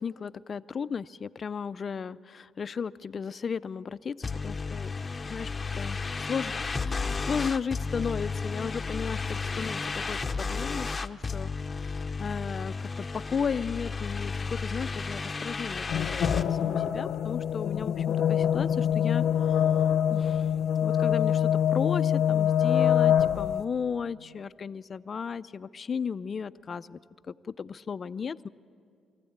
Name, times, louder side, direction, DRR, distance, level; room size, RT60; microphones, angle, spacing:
voice 1, 0.0-4.9 5.2-19.2 20.1-20.5 20.8-27.0 27.3-28.5, left 6 dB, 45° left, 15 dB, 0.5 m, -35 dB
sound 1, 4.2-16.5, left 4 dB, 25° left, 0.8 m, -33 dB
sound 2, 15.9-23.6, left 9 dB, 75° left, 0.8 m, -25 dB
23.5 x 15.5 x 8.7 m, 2.3 s
cardioid pair, 90°, 0 cm